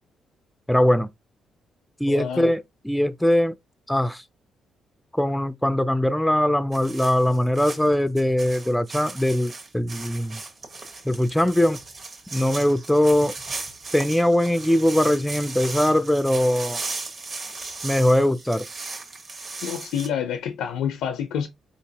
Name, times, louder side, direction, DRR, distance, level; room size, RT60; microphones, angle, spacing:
voice 1, 0.7-1.1 2.0-3.5 3.9-4.2 5.1-10.4 11.0-11.8 12.3-13.3 13.9-16.8 17.8-18.7, left 1 dB, 5° left, 0.3 m, -21 dB
voice 2, 2.1-2.5 19.6-21.5, left 8 dB, 85° left, 0.4 m, -28 dB
sound 1, 6.7-20.1, right 3 dB, 45° right, 1.2 m, -37 dB
4.3 x 2.8 x 2.8 m
cardioid pair, 90°, 0 cm